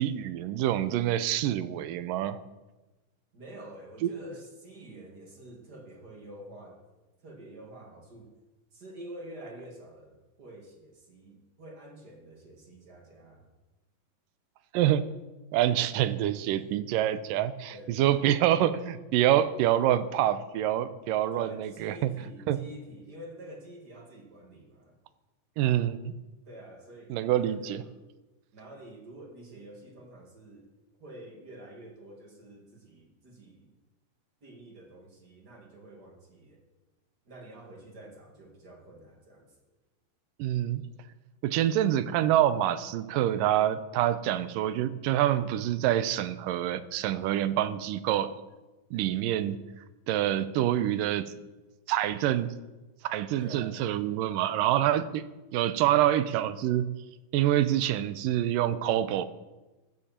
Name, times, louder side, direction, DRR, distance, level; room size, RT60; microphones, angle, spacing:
voice 1, 0.0-2.4 4.0-4.1 14.7-15.0 15.5-22.1 22.5-22.6 25.6-26.1 27.1-27.8 40.4-40.8 41.4-48.3 48.9-49.6 50.1-51.3 51.9-52.5 53.0-55.3 55.5-56.9 57.3-59.3, right 12 dB, 85° right, 13 dB, 2.3 m, -26 dB
voice 2, 3.3-6.8 7.2-8.3 8.7-13.4 16.6-16.8 17.7-18.4 21.3-24.9 26.5-28.0 28.5-30.7 31.0-33.7 34.4-36.6 37.3-39.5 48.9-49.6 53.4-53.7, right 1 dB, 30° right, 0 dB, 2.6 m, -48 dB
14.5 x 13.5 x 4.5 m, 1.1 s
omnidirectional pair, 3.9 m